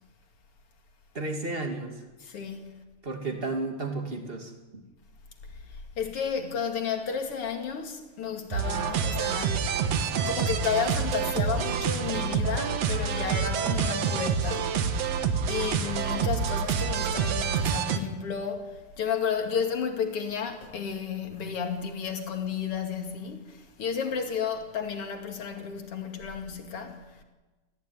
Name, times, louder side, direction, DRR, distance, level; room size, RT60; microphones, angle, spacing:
voice 1, 1.1-2.0 3.0-4.8, right 3 dB, 25° right, 1.3 m, -33 dB
voice 2, 2.2-2.7 5.5-9.6 10.2-15.0 15.5-27.2, left 7 dB, 40° left, 2.5 m, -32 dB
sound 1, 8.5-18.0, right 6 dB, 80° right, 1.4 m, -27 dB
25.0 x 14.5 x 9.4 m
omnidirectional pair, 4.9 m